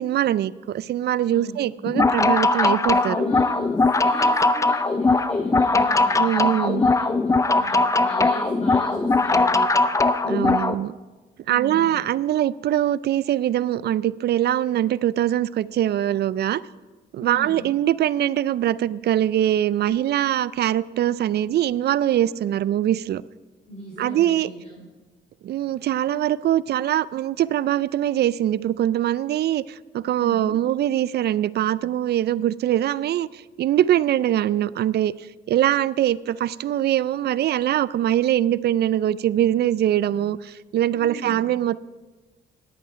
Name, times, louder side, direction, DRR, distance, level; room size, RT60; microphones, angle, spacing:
voice 1, 0.0-3.2 6.2-6.8 10.2-10.9 11.5-16.6 17.1-23.2 24.0-24.5 25.4-41.8, right 12 dB, 55° right, 19 dB, 0.4 m, -22 dB
voice 2, 1.3-1.6 3.0-7.1 7.4-9.7 11.4-12.0 17.2-17.7 22.1-22.5 23.6-24.8 30.2-30.6 40.9-41.5, equal, 35° left, -4 dB, 3.1 m, -38 dB
sound 1, 1.9-10.7, left 3 dB, 15° left, 0.4 m, -20 dB
11.0 x 8.7 x 5.0 m, 1.2 s
cardioid pair, 90°, 20 cm